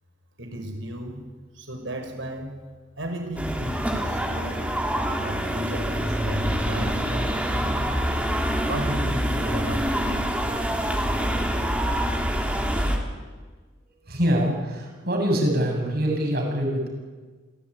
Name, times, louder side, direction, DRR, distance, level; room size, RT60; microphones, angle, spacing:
voice 1, 0.4-1.2 1.5-2.5 3.0-4.7 5.0-7.7 8.7-10.0, right 1 dB, 70° right, 4 dB, 6.0 m, -34 dB
sound 1, 3.4-13.0, equal, 5° right, 3.2 m, -26 dB
voice 2, 14.1-16.9, equal, 55° right, 1 dB, 7.8 m, -24 dB
26.5 x 17.5 x 9.7 m, 1.4 s
head